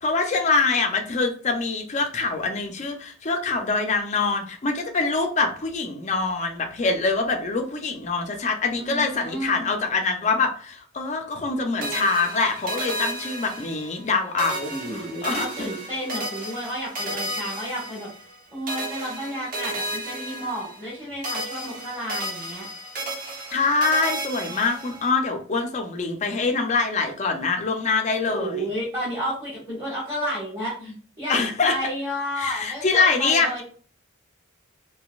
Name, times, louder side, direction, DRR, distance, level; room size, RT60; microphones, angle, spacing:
voice 1, 0.0-15.5 23.5-28.7 31.3-31.7 32.4-33.6, left 4 dB, 35° left, 4 dB, 0.5 m, -24 dB
voice 2, 8.7-9.7 14.7-18.1 18.5-22.7 28.2-33.6, equal, 20° right, -9 dB, 1.4 m, -31 dB
sound 1, 11.8-14.1 14.4-18.4 18.7-21.0 21.2-25.1, right 1 dB, 40° right, 0.9 m, -33 dB
3.9 x 2.6 x 2.3 m, 0.44 s
head